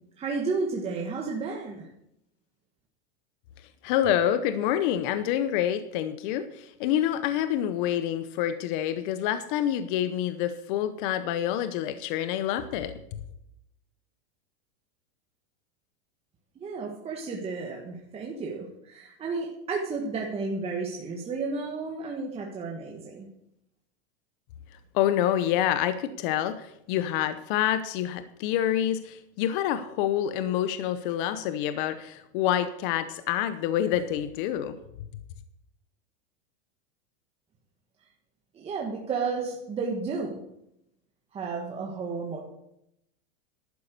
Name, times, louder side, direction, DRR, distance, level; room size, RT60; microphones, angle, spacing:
voice 1, 0.2-1.9 16.6-23.3 38.5-40.4 41.3-42.4, right 4 dB, 15° right, -1 dB, 1.4 m, -32 dB
voice 2, 3.8-12.9 24.9-34.7, left 11 dB, 50° left, 11 dB, 0.8 m, -27 dB
11.5 x 9.4 x 6.7 m, 0.80 s
supercardioid pair, 150°, 34 cm